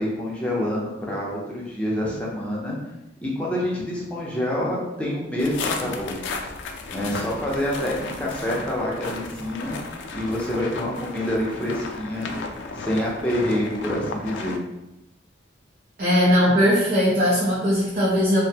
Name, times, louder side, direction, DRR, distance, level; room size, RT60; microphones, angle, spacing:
voice 1, 0.0-2.8 3.2-6.2 6.9-9.8 10.1-12.3 12.7-14.6, left 1 dB, 5° left, -5 dB, 0.5 m, -27 dB
sound 1, 5.4-14.6, left 3 dB, 75° left, 0.3 m, -34 dB
voice 2, 16.0-18.4, equal, 50° right, -8 dB, 0.6 m, -19 dB
2.6 x 2.1 x 2.7 m, 0.92 s
head